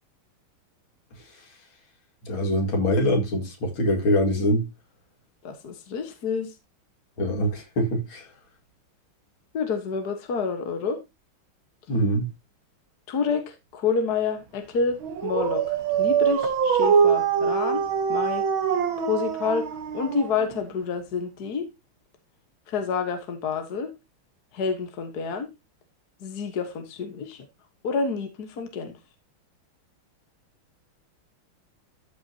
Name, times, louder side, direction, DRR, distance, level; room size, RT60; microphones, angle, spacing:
voice 1, 2.2-4.6 7.2-8.3 11.9-12.3, equal, 70° left, 3.0 m, -23 dB
voice 2, 5.4-6.6 9.5-11.0 13.1-18.4 19.0-21.7 22.7-23.9 24.5-25.5 26.2-27.5 27.8-29.0, left 5 dB, 50° left, 1.8 m, -29 dB
Dog, 15.0-20.7, right 7 dB, 70° right, 2.1 m, -23 dB
13.5 x 5.5 x 2.8 m
omnidirectional pair, 2.3 m